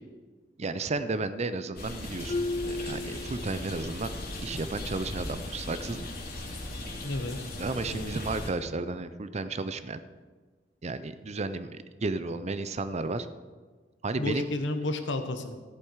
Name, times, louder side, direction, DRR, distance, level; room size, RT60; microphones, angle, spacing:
voice 1, 0.6-2.4 2.7-4.1 4.4-6.1 7.6-10.0 10.8-13.3 14.0-14.5, right 3 dB, 35° right, 12 dB, 0.6 m, -33 dB
sound 1, 1.8-8.5, left 1 dB, 55° left, 2.6 m, -38 dB
Marimba xylophone, 2.3-4.0, left 2 dB, 30° left, 0.3 m, -34 dB
voice 2, 7.0-7.4 7.9-8.1 14.2-15.5, left 2 dB, 75° left, 7 dB, 1.2 m, -31 dB
13.5 x 11.0 x 4.7 m, 1.4 s
head